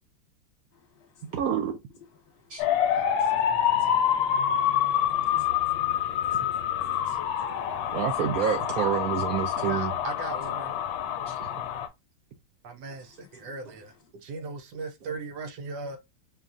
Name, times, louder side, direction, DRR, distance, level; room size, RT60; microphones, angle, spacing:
voice 1, 1.3-1.8 2.5-3.0 7.9-9.9 11.3-11.4, right 8 dB, 85° right, 0.7 m, -28 dB
sound 1, 2.6-11.9, left 9 dB, 80° left, 1.3 m, -27 dB
voice 2, 3.8-4.2 4.9-7.8 11.1-11.3, left 5 dB, 35° left, 1.4 m, -51 dB
voice 3, 9.6-10.8 12.6-16.0, right 3 dB, 65° right, 1.1 m, -38 dB
5.5 x 2.3 x 2.4 m
omnidirectional pair, 2.2 m